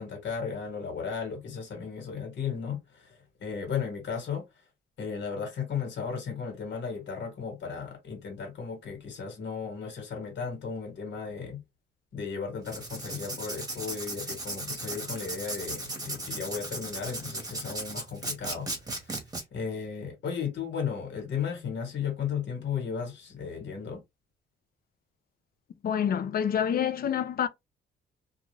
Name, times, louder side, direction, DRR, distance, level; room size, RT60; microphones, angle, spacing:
voice 1, 0.0-4.4 5.0-11.6 12.1-18.7 19.5-24.0, left 6 dB, 65° left, 1.5 m, -35 dB
Writing, 12.6-19.4, right 2 dB, 20° right, 1.1 m, -36 dB
voice 2, 25.8-27.5, left 8 dB, 50° left, 0.5 m, -27 dB
2.4 x 2.4 x 3.1 m
cardioid pair, 90°, 20 cm